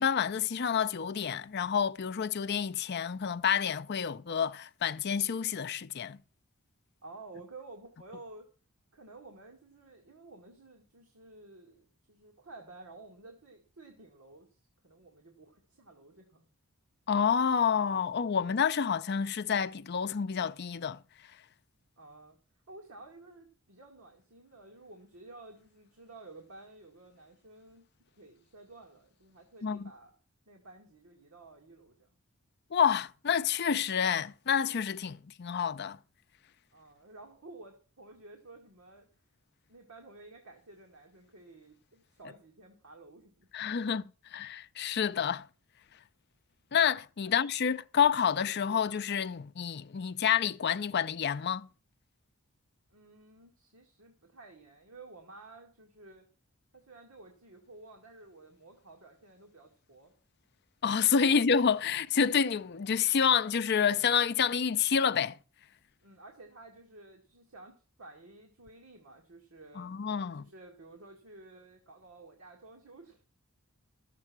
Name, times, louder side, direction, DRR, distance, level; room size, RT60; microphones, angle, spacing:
voice 1, 0.0-6.2 17.1-21.0 29.6-29.9 32.7-36.0 43.5-45.5 46.7-51.7 60.8-65.4 69.8-70.4, left 7 dB, 50° left, 0.5 m, -28 dB
voice 2, 7.0-8.5 8.9-14.5 14.8-16.5 22.0-22.4 22.7-27.8 28.2-30.1 30.5-32.1 36.7-39.1 39.7-43.5 47.2-47.4 52.9-56.2 56.7-60.1 61.3-61.4 66.0-69.9 70.3-73.2, right 2 dB, 80° right, 2.1 m, -52 dB
12.5 x 7.5 x 6.0 m
head